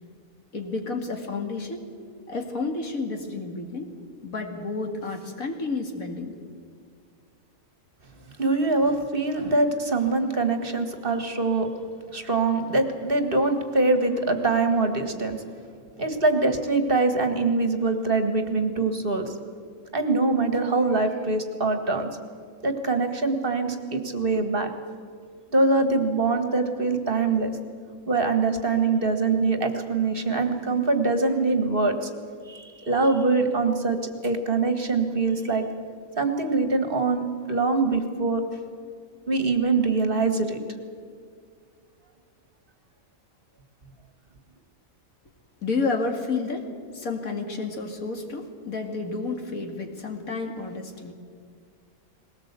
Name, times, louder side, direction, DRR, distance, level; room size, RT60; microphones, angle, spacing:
voice 1, 0.5-1.8 2.3-3.9 4.2-6.3 45.6-46.7 46.9-51.1, left 3 dB, 70° left, 3 dB, 2.7 m, -30 dB
voice 2, 8.4-11.7 12.1-15.4 16.0-19.3 19.9-22.1 22.6-24.7 25.5-27.5 28.1-32.1 32.5-34.0 34.2-35.6 36.2-38.4 39.3-40.6, right 3 dB, 40° right, 7 dB, 1.8 m, -23 dB
21.0 x 18.5 x 8.3 m, 2.2 s
omnidirectional pair, 1.5 m